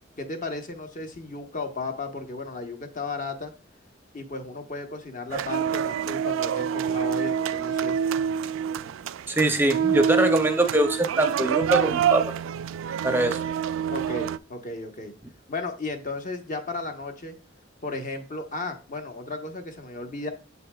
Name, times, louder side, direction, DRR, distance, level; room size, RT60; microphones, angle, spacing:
voice 1, 0.2-3.5 4.1-8.0 13.9-15.1 15.5-17.3 17.8-20.3, left 3 dB, 45° left, 6 dB, 1.1 m, -34 dB
sound 1, 5.3-14.4, right 8 dB, 85° right, 0.3 m, -26 dB
voice 2, 9.3-12.2 13.0-13.4, right 1 dB, 10° right, 6 dB, 0.6 m, -23 dB
7.4 x 6.6 x 2.3 m, 0.36 s
head